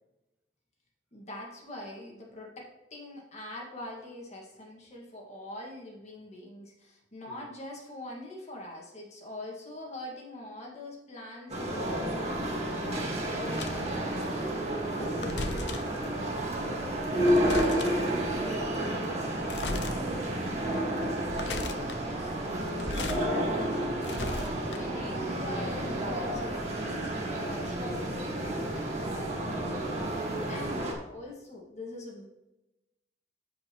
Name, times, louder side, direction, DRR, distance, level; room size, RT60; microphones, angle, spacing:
voice 1, 1.1-14.5 14.9-15.3 21.2-32.3, left 1 dB, 40° left, -2 dB, 2.0 m, -44 dB
sound 1, 11.5-30.9, right 1 dB, 40° right, 1.8 m, -31 dB
sound 2, 13.5-14.0 15.0-16.0 17.0-18.1 19.4-20.0 20.4-20.5 21.1-22.0 22.6-23.2 23.6-25.0, left 3 dB, 80° left, 0.8 m, -37 dB
voice 2, 16.4-20.7, right 1 dB, 10° right, -3 dB, 1.8 m, -44 dB
14.5 x 5.2 x 3.1 m, 0.95 s
head